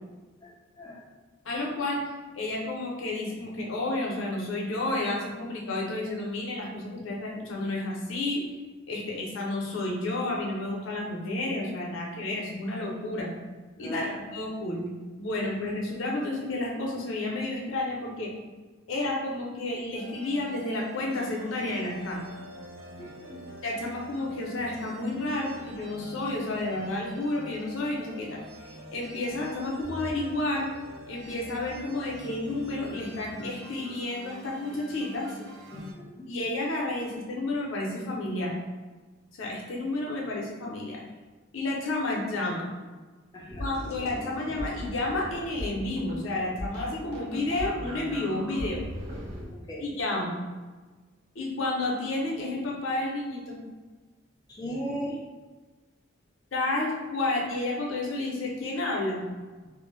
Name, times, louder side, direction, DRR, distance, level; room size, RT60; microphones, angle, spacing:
voice 1, 1.4-2.0 2.3-8.4 8.9-13.3 13.8-14.8 15.2-18.3 18.9-22.2 23.6-30.7 31.1-35.4 36.3-38.6 39.4-41.0 41.5-42.7 43.6-48.8 49.8-50.4 51.4-53.6 56.5-59.2, left 2 dB, 85° left, -2 dB, 0.6 m, -31 dB
voice 2, 13.8-14.2 23.0-23.4 35.7-36.3 43.3-43.7 49.7-49.8 54.5-55.2, equal, 20° left, -4 dB, 0.4 m, -37 dB
sound 1, 19.9-35.9, equal, 85° right, 0.4 m, -45 dB
sound 2, 43.5-49.5, equal, 55° right, 0.8 m, -38 dB
2.5 x 2.0 x 3.1 m, 1.3 s
head